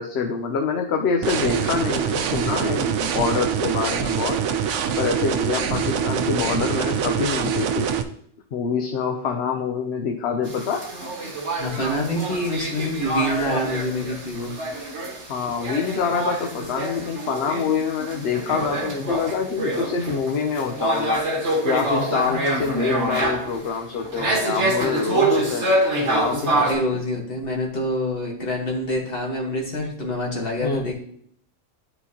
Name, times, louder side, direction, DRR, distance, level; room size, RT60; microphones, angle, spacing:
voice 1, 0.0-4.4 5.0-7.9 8.5-10.8 15.3-21.2 21.6-25.7 26.0-26.5 30.6-30.9, left 5 dB, 70° left, 3 dB, 0.9 m, -25 dB
sound 1, 1.2-8.0, right 8 dB, 90° right, 0.9 m, -24 dB
sound 2, 10.5-26.7, right 2 dB, 70° right, 1.8 m, -26 dB
voice 2, 11.6-14.5 26.6-30.9, left 1 dB, 50° left, -1 dB, 1.7 m, -26 dB
11.0 x 4.3 x 2.8 m, 0.65 s
omnidirectional pair, 1.2 m